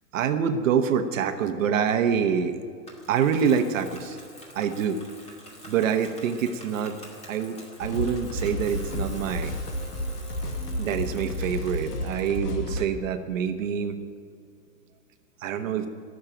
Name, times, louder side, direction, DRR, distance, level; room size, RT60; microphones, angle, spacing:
voice 1, 0.1-2.6 3.1-4.2 4.5-5.0 5.7-7.0 7.3-9.5 10.8-14.0 15.4-15.9, right 7 dB, 55° right, 8 dB, 1.2 m, -26 dB
Bicycle, 2.9-12.5, left 1 dB, 15° left, 2.3 m, -47 dB
sound 1, 7.8-12.9, equal, 85° left, 2.1 m, -31 dB
17.5 x 6.6 x 9.0 m, 2.3 s
hypercardioid pair, 135°, 46 cm